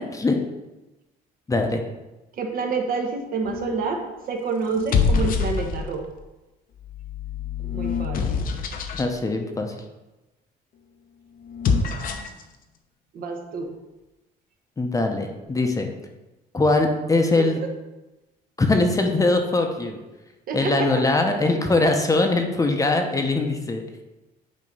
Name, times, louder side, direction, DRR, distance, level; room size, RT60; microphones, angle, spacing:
voice 1, 1.5-1.8 9.0-9.7 14.8-15.9 16.5-17.6 18.6-20.0 20.5-23.8, left 2 dB, 20° left, 4 dB, 0.8 m, -21 dB
voice 2, 2.4-6.0 7.7-8.4 13.1-13.7 20.5-20.9, right 4 dB, 60° right, 3 dB, 1.1 m, -28 dB
sound 1, 3.4-3.9 4.7-6.1 6.8-9.1 11.4-12.4, left 5 dB, 55° left, 0.7 m, -25 dB
8.5 x 3.0 x 5.3 m, 1.1 s
cardioid pair, 110°, 17 cm